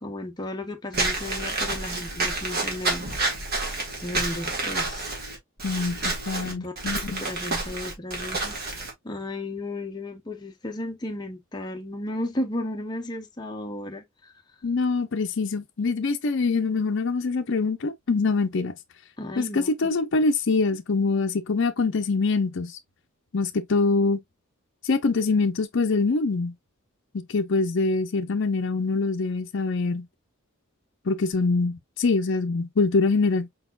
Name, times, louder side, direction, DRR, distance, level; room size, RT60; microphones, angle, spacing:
voice 1, 0.0-3.1 4.0-5.1 6.4-6.7 7.2-14.3 19.2-19.9, left 1 dB, 20° left, 0.6 m, -34 dB
Walk footsteps / Squeak, 0.9-8.9, right 2 dB, 45° right, 1.8 m, -29 dB
voice 2, 5.6-7.2 14.6-18.7 19.4-22.8 23.3-24.2 24.8-26.5 27.1-30.1 31.1-33.5, left 3 dB, 60° left, 0.5 m, -24 dB
4.7 x 4.1 x 2.3 m
head